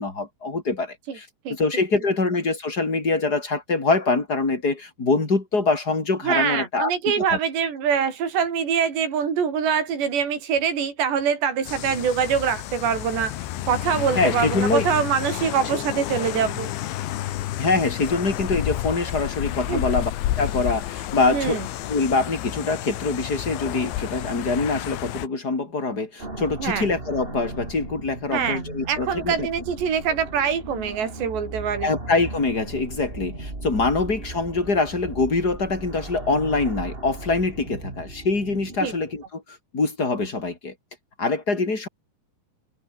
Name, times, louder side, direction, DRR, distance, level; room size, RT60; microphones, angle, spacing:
voice 1, 0.0-7.4 14.2-14.9 17.6-20.1 20.4-21.6 21.9-29.5 31.8-40.7 41.2-41.9, left 3 dB, 20° left, 4.5 m, -24 dB
voice 2, 6.2-13.4 13.7-16.7 19.7-19.8 21.3-21.6 26.6-26.9 28.3-31.9 38.8-38.9, right 7 dB, 70° right, 7.0 m, -24 dB
sound 1, 11.7-25.3, left 14 dB, 85° left, 3.8 m, -30 dB
sound 2, 26.2-39.3, right 2 dB, 15° right, 3.5 m, -37 dB
omnidirectional pair, 5.1 m